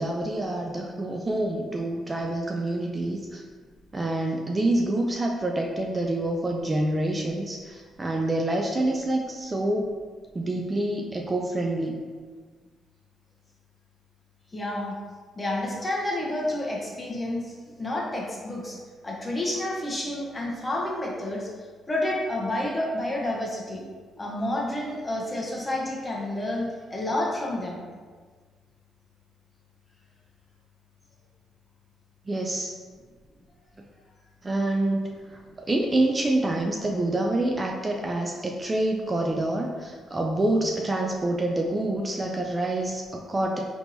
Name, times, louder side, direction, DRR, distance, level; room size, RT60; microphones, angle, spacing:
voice 1, 0.0-3.4 3.9-10.0 10.3-12.1 32.3-32.8 34.4-43.6, right 1 dB, 25° right, 0 dB, 0.3 m, -27 dB
voice 2, 14.5-15.0 15.4-18.8 19.0-21.5 21.9-23.8 24.2-27.8, left 1 dB, 20° left, -3 dB, 0.8 m, -29 dB
3.5 x 2.9 x 2.6 m, 1.5 s
cardioid pair, 90°, 0 cm